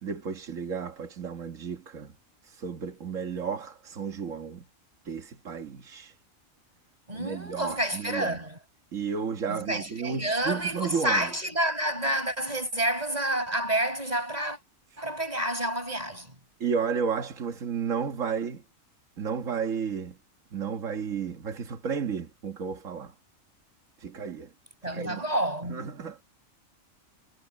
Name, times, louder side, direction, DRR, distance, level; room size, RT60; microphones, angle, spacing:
voice 1, 0.0-2.1 2.4-4.6 5.0-6.1 7.1-8.4 8.9-11.3 16.6-18.6 19.2-20.2 20.5-23.1 24.0-24.5 24.9-25.2 25.7-26.2, right 6 dB, 75° right, 1.8 m, -32 dB
voice 2, 7.1-8.6 9.5-14.6 15.0-16.3 24.8-25.9, right 1 dB, 30° right, 6.3 m, -29 dB
omnidirectional pair, 1.3 m